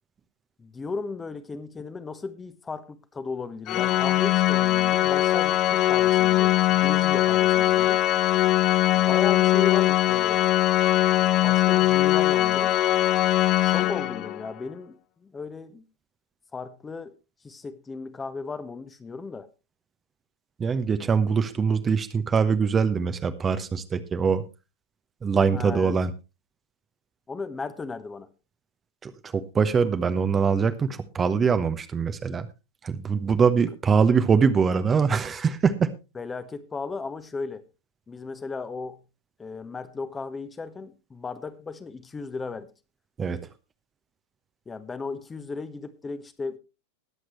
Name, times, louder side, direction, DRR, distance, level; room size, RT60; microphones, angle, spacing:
voice 1, 0.6-8.0 8.9-10.4 11.1-12.7 13.6-14.9 15.2-15.8 16.5-17.1 17.4-19.5 25.5-26.0 27.3-28.3 36.1-37.6 38.1-39.0 39.4-42.7 44.7-46.6, left 4 dB, 15° left, 1.1 m, -35 dB
Organ, 3.7-14.5, left 14 dB, 35° left, 0.6 m, -21 dB
voice 2, 20.6-24.4 25.2-26.1 29.0-32.5 32.8-35.9 43.2-43.4, right 6 dB, 20° right, 1.0 m, -23 dB
20.5 x 7.9 x 3.2 m
figure-of-eight pair, 90°, 0 cm